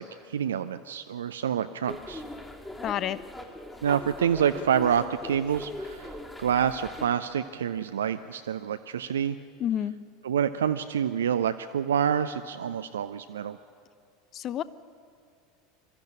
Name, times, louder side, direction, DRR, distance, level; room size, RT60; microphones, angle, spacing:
voice 1, 0.0-2.2 3.8-9.4 10.2-13.6, right 8 dB, 70° right, 10 dB, 0.5 m, -27 dB
sound 1, 1.9-7.1, left 1 dB, 10° left, 2.2 m, -40 dB
voice 2, 2.8-3.2 9.6-10.0 14.3-14.6, left 10 dB, 35° left, 18 dB, 0.6 m, -29 dB
22.0 x 13.0 x 9.7 m, 2.3 s
figure-of-eight pair, 80°, 0 cm